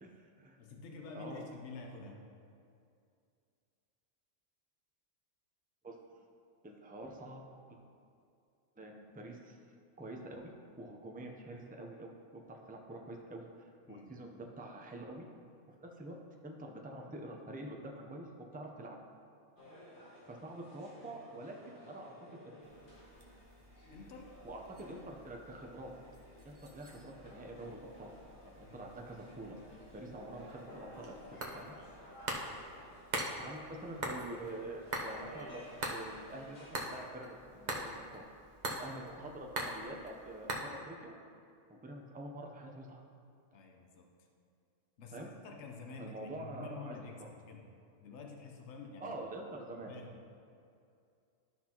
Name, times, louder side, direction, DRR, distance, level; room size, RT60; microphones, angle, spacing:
voice 1, 0.0-0.6 1.1-1.5 5.8-6.0 6.6-7.4 8.8-9.6 10.0-10.5 10.8-15.3 15.8-16.2 16.4-19.0 20.3-22.1 22.4-22.5 24.4-25.9 26.4-28.1 28.4-29.5 29.9-31.8 33.4-38.2 38.7-41.1 41.7-43.0 45.1-45.3 46.0-47.3 49.0-49.9, right 1 dB, 15° right, 1 dB, 0.4 m, -46 dB
voice 2, 0.6-2.2 13.9-14.1 23.9-24.3 28.6-28.9 31.8-31.9 43.5-44.1 45.0-47.6 48.0-49.2 49.8-50.2, left 4 dB, 60° left, 1 dB, 1.1 m, -49 dB
sound 1, 19.6-37.1, left 1 dB, 40° left, 1.4 m, -55 dB
sound 2, 22.6-40.5, right 1 dB, 40° right, 0.8 m, -44 dB
12.0 x 5.8 x 2.9 m, 2.4 s
omnidirectional pair, 1.4 m